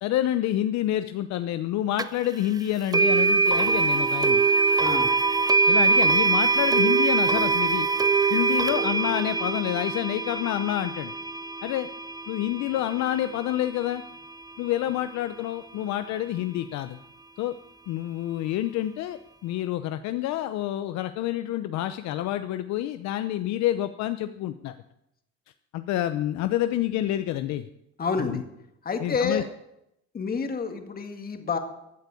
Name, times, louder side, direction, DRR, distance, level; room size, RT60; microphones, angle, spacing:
voice 1, 0.0-4.4 5.7-7.9 8.3-11.1 11.6-11.9 12.3-14.0 14.6-17.0 17.4-17.5 17.9-24.7 25.7-27.6 28.2-28.4 29.0-29.4, left 13 dB, 65° left, 10 dB, 0.8 m, -28 dB
sound 1, 2.0-2.1 2.9-13.9, right 3 dB, 15° right, 0.5 m, -23 dB
voice 2, 28.0-28.4 28.9-29.4 30.1-31.6, left 5 dB, 30° left, 6 dB, 2.1 m, -28 dB
15.5 x 8.2 x 8.4 m, 0.84 s
cardioid pair, 115°, 30 cm